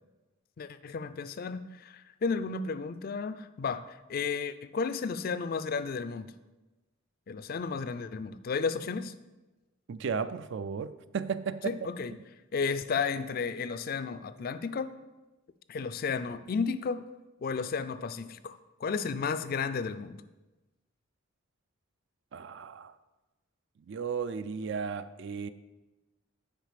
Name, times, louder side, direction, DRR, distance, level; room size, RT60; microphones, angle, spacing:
voice 1, 0.6-6.3 7.3-9.1 11.6-12.1 12.5-15.0 15.7-17.1 17.4-20.2, left 5 dB, 45° left, 13 dB, 0.4 m, -33 dB
voice 2, 9.9-11.8 22.3-22.9 23.9-25.5, right 6 dB, 60° right, 13 dB, 0.4 m, -34 dB
9.4 x 4.7 x 5.0 m, 1.1 s
head